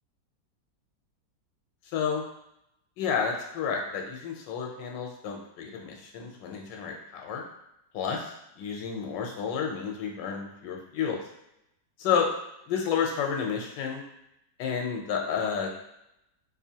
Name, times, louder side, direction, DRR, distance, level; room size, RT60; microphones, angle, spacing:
voice 1, 1.9-2.2 3.0-7.4 7.9-11.2 12.0-12.3 12.7-14.0 14.6-15.7, left 6 dB, 80° left, 1 dB, 1.3 m, -30 dB
4.3 x 2.7 x 2.8 m, 0.83 s
omnidirectional pair, 1.9 m